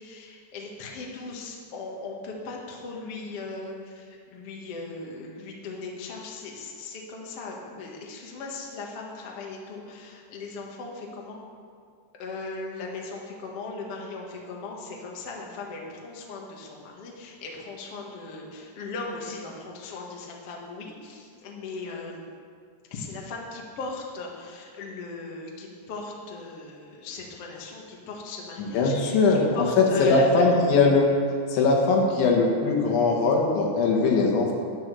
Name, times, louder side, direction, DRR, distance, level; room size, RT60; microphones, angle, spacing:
voice 1, 0.0-11.4 12.2-22.2 22.9-30.5, left 3 dB, 60° left, -1 dB, 1.5 m, -38 dB
voice 2, 28.6-31.1 31.5-34.5, left 3 dB, 80° left, 0 dB, 3.9 m, -21 dB
10.0 x 9.2 x 6.9 m, 2.2 s
omnidirectional pair, 5.3 m